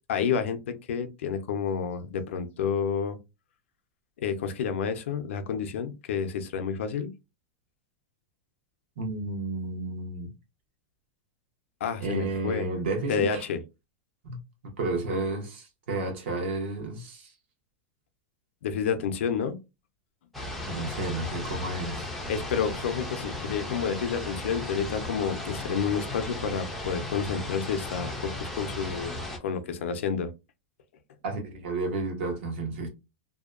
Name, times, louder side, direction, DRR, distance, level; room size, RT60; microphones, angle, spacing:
voice 1, 0.1-3.2 4.2-7.1 11.8-12.7 13.1-13.6 18.6-19.6 22.3-30.3, left 6 dB, 80° left, 0.5 m, -30 dB
voice 2, 9.0-10.3 12.0-13.4 14.2-17.3 20.7-22.1 31.2-32.9, right 2 dB, 65° right, 0.9 m, -32 dB
sound 1, 20.3-29.4, left 2 dB, ahead, 0.4 m, -36 dB
2.6 x 2.2 x 2.3 m
supercardioid pair, 175°, 7 cm